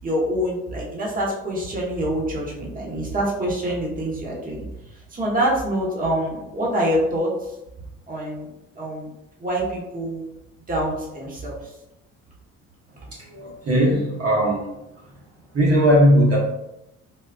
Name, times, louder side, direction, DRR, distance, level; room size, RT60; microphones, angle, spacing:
voice 1, 0.0-7.6 8.1-8.5 8.7-9.1 9.4-10.2 10.7-11.8, right 1 dB, 25° right, -4 dB, 1.2 m, -26 dB
voice 2, 13.3-14.6 15.5-16.4, equal, 50° right, -4 dB, 1.1 m, -17 dB
4.3 x 2.4 x 2.3 m, 0.89 s
supercardioid pair, 80°, 31 cm